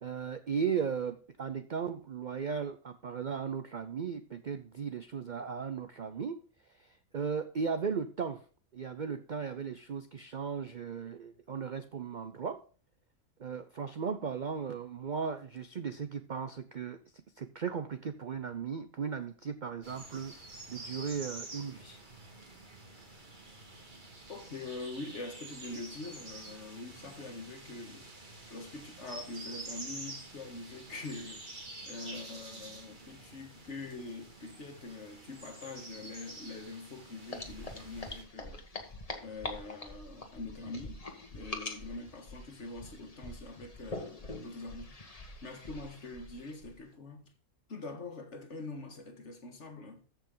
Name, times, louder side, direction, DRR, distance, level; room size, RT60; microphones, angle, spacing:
voice 1, 0.0-6.4 6.7-8.4 8.7-12.6 13.4-17.0 17.4-20.4 20.7-22.0, right 6 dB, 50° right, 0.5 m, -36 dB
sound 1, 19.8-38.2, right 2 dB, 35° right, 2.0 m, -48 dB
voice 2, 24.3-28.1 28.5-31.4 31.9-38.6 39.2-41.0 41.3-45.0 45.4-47.3 47.7-50.0, left 3 dB, 50° left, 1.9 m, -44 dB
sound 2, 37.3-46.8, left 2 dB, 25° left, 1.4 m, -44 dB
14.0 x 5.8 x 3.8 m
omnidirectional pair, 1.5 m